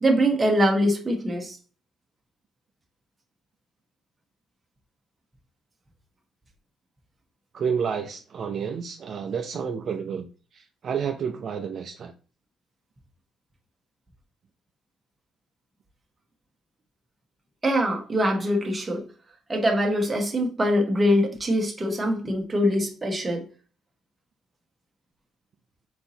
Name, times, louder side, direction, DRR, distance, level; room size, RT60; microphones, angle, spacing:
voice 1, 0.0-1.6 17.6-19.0 19.5-23.5, equal, 15° right, 1.0 m, -23 dB
voice 2, 7.5-10.3 10.5-12.1, right 6 dB, 40° right, 0.4 m, -30 dB
4.4 x 3.9 x 2.8 m
cardioid pair, 150°, 0 cm